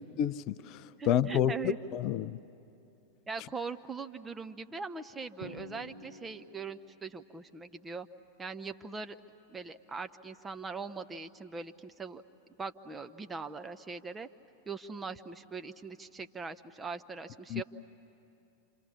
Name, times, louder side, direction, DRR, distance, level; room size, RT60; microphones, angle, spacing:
voice 1, 0.2-0.8 1.1-2.4 17.5-17.6, left 9 dB, 40° left, 15 dB, 0.5 m, -29 dB
voice 2, 1.0-1.8 3.3-8.1 8.4-9.2 9.5-12.2 12.6-14.3 14.7-17.6, right 4 dB, 15° right, 9 dB, 0.8 m, -41 dB
Drum, 5.4-7.1, left 1 dB, 85° right, 2.0 m, -49 dB
28.0 x 27.0 x 7.1 m, 2.8 s
figure-of-eight pair, 90°, 0 cm